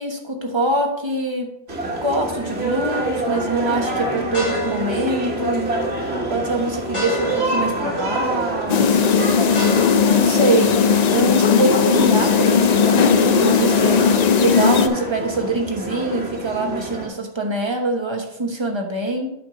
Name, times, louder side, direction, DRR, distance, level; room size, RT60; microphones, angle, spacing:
voice 1, 0.0-1.5 2.0-5.8 6.3-9.5 10.0-10.8 11.1-14.0 14.4-19.3, right 2 dB, 25° right, 2 dB, 1.1 m, -24 dB
sound 1, 1.7-17.1, right 1 dB, 55° right, 1.8 m, -27 dB
sound 2, 2.8-3.2 3.7-10.1, equal, 25° left, 3.1 m, -31 dB
sound 3, 8.7-14.9, left 6 dB, 85° left, 0.3 m, -17 dB
8.4 x 6.3 x 3.8 m, 0.81 s
omnidirectional pair, 1.3 m